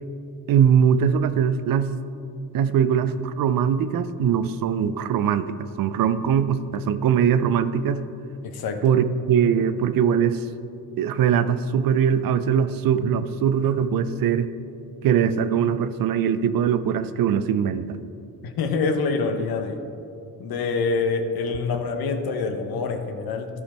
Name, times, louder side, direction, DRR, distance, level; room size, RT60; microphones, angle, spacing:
voice 1, 0.5-1.9 2.5-5.5 5.8-8.0 8.8-10.4 11.0-14.5 15.0-18.0, right 8 dB, 60° right, 12 dB, 0.5 m, -21 dB
voice 2, 8.4-8.8 18.4-19.8 20.4-23.5, left 4 dB, 65° left, 6 dB, 1.0 m, -26 dB
13.5 x 4.9 x 4.3 m, 2.6 s
cardioid pair, 80°, 39 cm